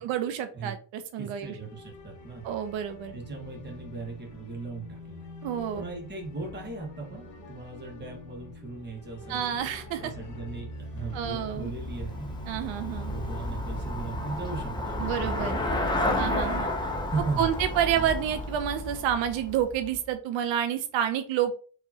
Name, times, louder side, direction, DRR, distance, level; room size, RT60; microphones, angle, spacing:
voice 1, 0.0-1.6 2.4-3.2 5.4-5.8 9.3-10.1 11.1-11.7 12.5-13.1 15.0-15.6 16.2-16.7 17.4-21.5, right 9 dB, 90° right, 8 dB, 0.7 m, -29 dB
voice 2, 1.2-2.4 3.1-5.3 5.7-9.4 10.0-12.3 13.0-16.3 17.1-18.1, right 4 dB, 25° right, 0 dB, 1.4 m, -38 dB
sound 1, 1.3-17.4, equal, 40° left, 1.2 m, -44 dB
Drum, 6.4-7.9 9.0-12.0, left 5 dB, 65° left, 1.4 m, -50 dB
Traffic noise roadway noise / Bicycle, 10.9-20.1, left 1 dB, 10° left, 0.6 m, -32 dB
4.8 x 3.0 x 2.8 m, 0.39 s
cardioid pair, 140°, 44 cm